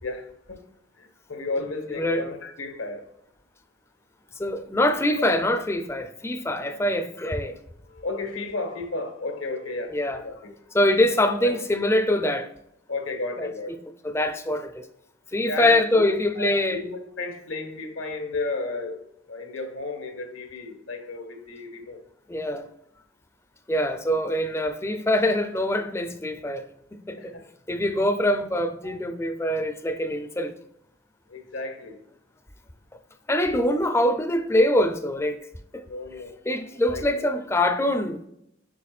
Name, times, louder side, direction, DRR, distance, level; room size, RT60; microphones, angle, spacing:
voice 1, 0.0-0.6 1.0-3.1 7.9-10.5 11.2-11.6 12.9-13.7 15.5-22.0 27.2-27.5 28.8-28.9 31.3-32.0 35.8-36.4 36.9-37.3, left 3 dB, 80° left, 1.5 m, -33 dB
voice 2, 4.4-7.6 9.9-10.2 10.7-12.5 13.4-13.5 14.0-14.9 15.3-16.9 22.3-22.7 23.7-26.7 26.9-27.3 27.7-30.5 33.3-35.4 35.7-35.8 36.5-38.2, left 1 dB, 15° left, 0.5 m, -24 dB
8.4 x 5.7 x 2.4 m
head